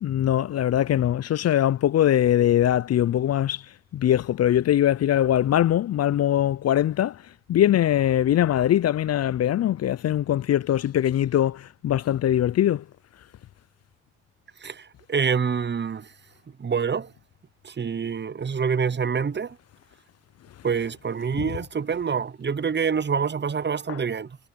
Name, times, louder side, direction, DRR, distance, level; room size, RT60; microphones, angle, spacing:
voice 1, 0.0-3.6 3.9-7.2 7.5-12.8 21.4-21.5 23.9-24.0, left 11 dB, 50° left, 0.5 m, -22 dB
voice 2, 14.6-16.1 16.6-17.1 17.6-19.6 20.6-24.4, right 6 dB, 35° right, 1.0 m, -26 dB
supercardioid pair, 55°, 33 cm